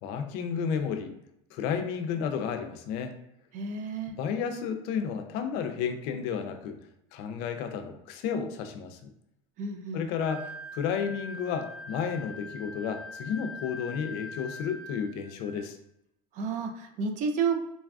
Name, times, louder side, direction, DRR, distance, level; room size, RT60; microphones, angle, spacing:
voice 1, 0.0-1.1 1.5-3.1 4.1-6.8 7.1-9.1 9.9-15.8, left 7 dB, 65° left, 6 dB, 0.5 m, -32 dB
voice 2, 3.5-4.1 9.6-10.1 16.3-17.6, right 5 dB, 45° right, 6 dB, 0.4 m, -31 dB
Wind instrument woodwind instrument, 10.2-15.6, left 1 dB, 65° right, 0.9 m, -43 dB
4.0 x 2.3 x 2.3 m, 0.79 s
supercardioid pair, 115°, 18 cm